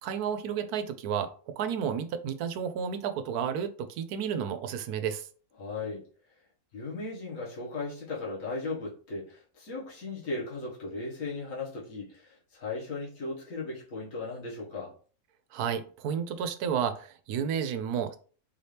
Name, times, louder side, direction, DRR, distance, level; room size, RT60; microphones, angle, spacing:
voice 1, 0.0-5.3 15.5-18.2, right 7 dB, 85° right, 1.1 m, -31 dB
voice 2, 5.6-6.1 6.7-14.9, left 3 dB, 65° left, 2.0 m, -37 dB
4.5 x 2.8 x 3.3 m
omnidirectional pair, 1.6 m